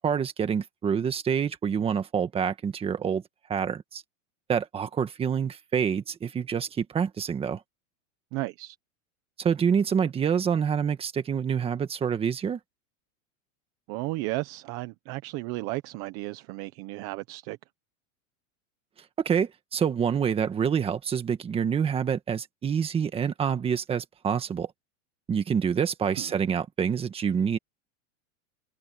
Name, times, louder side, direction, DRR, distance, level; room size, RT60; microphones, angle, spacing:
voice 1, 0.0-3.2 3.5-4.0 4.5-7.6 9.4-12.6 19.2-24.7 25.3-27.6, right 7 dB, 15° right, 1.5 m, -27 dB
voice 2, 8.3-8.8 13.9-17.6 26.2-26.3, right 21 dB, 35° right, 0.9 m, -34 dB
supercardioid pair, 165°, 39 cm